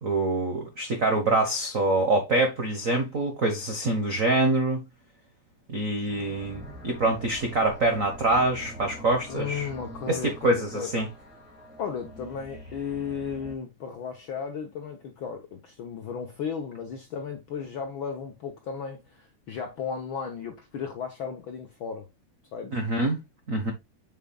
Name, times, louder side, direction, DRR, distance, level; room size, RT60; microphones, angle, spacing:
voice 1, 0.0-4.8 5.7-9.7 10.1-11.1 22.7-23.2 23.5-23.7, right 2 dB, 75° right, 0.7 m, -25 dB
sound 1, 6.1-13.6, equal, 5° right, 1.7 m, -44 dB
voice 2, 9.3-10.9 11.8-22.0 22.5-22.8, left 6 dB, 70° left, 1.2 m, -35 dB
7.1 x 6.5 x 2.3 m
omnidirectional pair, 3.3 m